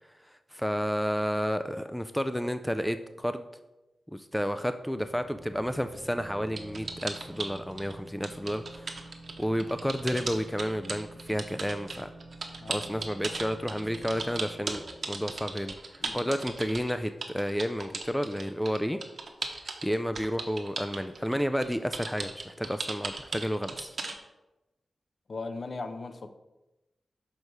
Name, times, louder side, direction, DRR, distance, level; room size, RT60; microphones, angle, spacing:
voice 1, 0.1-3.5 4.1-9.1 9.4-12.1 12.7-19.0 19.8-24.0, equal, 5° left, 9 dB, 0.3 m, -31 dB
sound 1, 4.8-16.3, right 2 dB, 85° right, 1.2 m, -49 dB
sound 2, 6.6-7.9 8.2-24.2, right 3 dB, 55° right, 1.0 m, -36 dB
voice 2, 12.6-12.9 16.0-16.3 25.3-26.3, left 3 dB, 50° left, 8 dB, 0.6 m, -38 dB
6.5 x 4.6 x 5.3 m, 1.0 s
wide cardioid pair, 110°, 0 cm